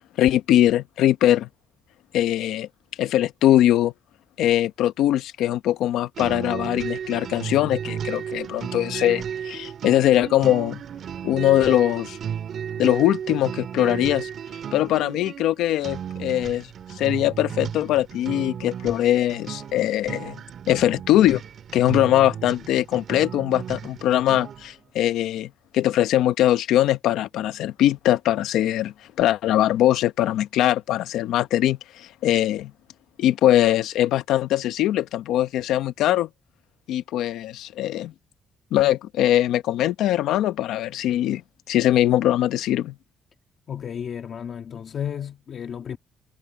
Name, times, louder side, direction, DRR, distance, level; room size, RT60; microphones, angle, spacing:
voice 1, 0.2-1.5 2.1-2.7 3.0-3.9 4.4-10.8 11.2-12.2 12.8-14.3 14.7-20.4 20.7-21.4 21.7-32.7 33.2-36.3 36.9-38.1 38.7-41.4 41.7-42.9, left 13 dB, 85° left, 1.0 m, -21 dB
sound 1, 6.2-24.7, right 8 dB, 60° right, 2.1 m, -34 dB
voice 2, 43.7-46.0, left 8 dB, 55° left, 2.0 m, -33 dB
cardioid pair, 90°, 0 cm